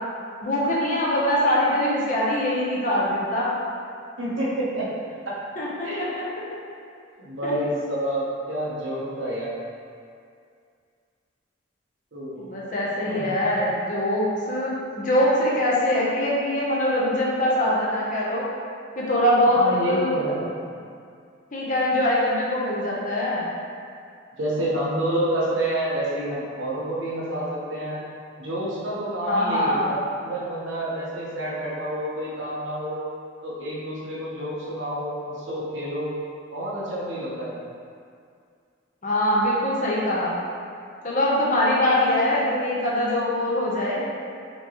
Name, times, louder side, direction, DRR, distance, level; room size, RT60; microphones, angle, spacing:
voice 1, 0.4-3.5 5.6-6.1 7.4-7.5 12.4-18.4 19.0-19.6 19.9-20.1 21.5-23.5 29.3-29.9 39.0-40.4 41.0-44.1, left 1 dB, 40° left, -6 dB, 0.7 m, -23 dB
voice 2, 4.2-4.9 5.3-5.4 5.8-6.1 7.2-9.6 12.1-12.4 13.0-13.3 19.5-20.5 24.4-28.0 28.4-33.0 33.4-36.1 36.5-37.5, right 1 dB, 65° right, -6 dB, 0.9 m, -28 dB
4.3 x 2.9 x 3.0 m, 2.3 s
head